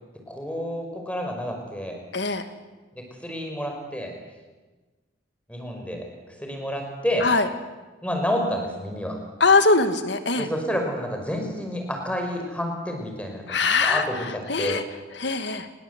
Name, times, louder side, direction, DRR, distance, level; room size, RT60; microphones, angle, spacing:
voice 1, 0.3-2.0 3.0-4.1 5.5-6.1 6.4-7.3 8.0-9.2 10.4-14.8, equal, 5° left, 2 dB, 5.3 m, -29 dB
voice 2, 9.4-10.5 13.5-14.0 14.5-14.8 15.2-15.7, left 3 dB, 65° left, 9 dB, 2.2 m, -21 dB
29.0 x 21.0 x 8.3 m, 1.3 s
head